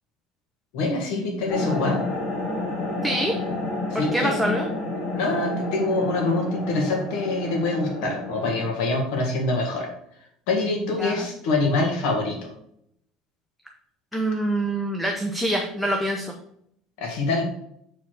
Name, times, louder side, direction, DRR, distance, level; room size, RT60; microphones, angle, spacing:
voice 1, 0.7-2.1 3.9-4.4 5.1-9.9 10.5-12.5 17.0-17.4, left 2 dB, 65° left, 1 dB, 1.9 m, -25 dB
sound 1, 1.5-8.7, left 2 dB, 40° left, 2.2 m, -30 dB
voice 2, 3.0-3.3 4.1-4.6 11.0-11.1 14.1-16.3, right 1 dB, ahead, 1 dB, 0.6 m, -25 dB
7.1 x 4.7 x 4.7 m, 0.72 s
cardioid pair, 175°, 0 cm